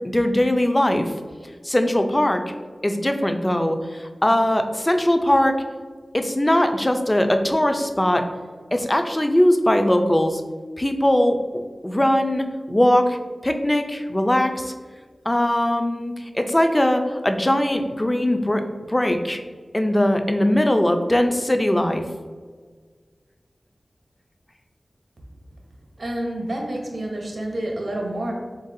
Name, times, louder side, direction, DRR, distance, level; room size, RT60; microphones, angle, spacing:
voice 1, 0.1-1.1 1.6-2.4 2.8-5.6 6.1-8.3 8.7-10.4 10.8-11.4 11.8-13.2 13.4-14.7 15.3-19.4 19.7-22.0, left 1 dB, 20° left, 6 dB, 0.4 m, -20 dB
voice 2, 26.0-28.3, right 1 dB, 70° right, 0 dB, 0.7 m, -28 dB
3.9 x 3.5 x 2.6 m, 1.5 s
wide cardioid pair, 75°, 0 cm